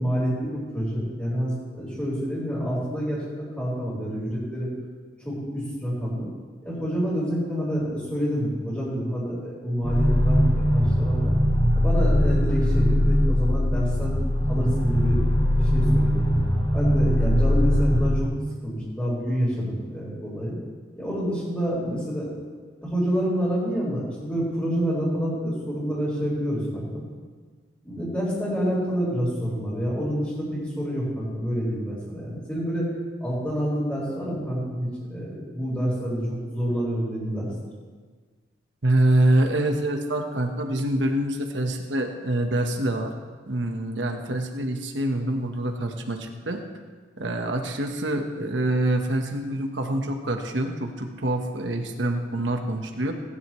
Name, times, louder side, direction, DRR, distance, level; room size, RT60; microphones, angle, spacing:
voice 1, 0.0-4.7 5.2-6.3 6.6-11.4 11.7-14.2 14.5-15.3 15.6-16.2 16.7-18.3 18.6-20.6 21.0-22.3 22.8-27.0 27.8-32.9 33.2-36.2 36.5-37.5, equal, 10° left, -10 dB, 4.3 m, -28 dB
sound 1, 9.8-18.2, equal, 35° left, 3.2 m, -21 dB
voice 2, 38.8-43.1 43.5-46.6 47.2-53.1, right 1 dB, 90° right, 4 dB, 1.2 m, -25 dB
20.0 x 11.5 x 3.2 m, 1.5 s
head